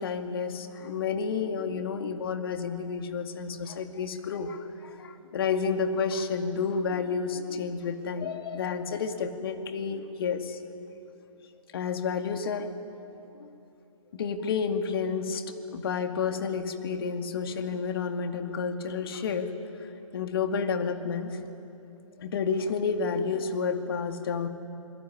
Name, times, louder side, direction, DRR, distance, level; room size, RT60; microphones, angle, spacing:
voice 1, 0.0-10.6 11.7-12.8 13.3-13.5 14.1-19.5 19.8-21.4 22.2-24.5, left 5 dB, 45° left, 7 dB, 2.3 m, -30 dB
27.5 x 22.0 x 9.8 m, 2.8 s
figure-of-eight pair, 135°, 18 cm